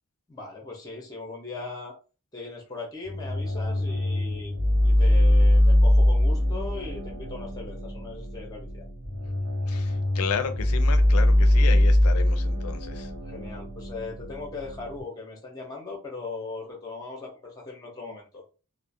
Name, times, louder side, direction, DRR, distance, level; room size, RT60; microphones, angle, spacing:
voice 1, 0.3-1.9 2.3-4.5 4.8-8.8 13.3-18.4, left 3 dB, 15° left, -1 dB, 0.6 m, -39 dB
sound 1, 3.0-15.0, left 1 dB, 85° right, 0.8 m, -22 dB
voice 2, 9.7-13.1, left 7 dB, 75° left, 9 dB, 0.4 m, -33 dB
2.4 x 2.0 x 2.6 m, 0.34 s
head